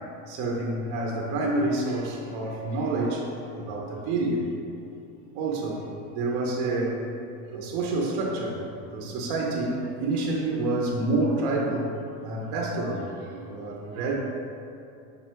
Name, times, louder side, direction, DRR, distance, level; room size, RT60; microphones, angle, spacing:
voice 1, 0.3-4.5 5.3-7.0 7.5-11.9 12.2-14.1, right 2 dB, 45° right, -1 dB, 0.5 m, -28 dB
5.1 x 2.1 x 4.4 m, 2.6 s
cardioid pair, 165°, 45 cm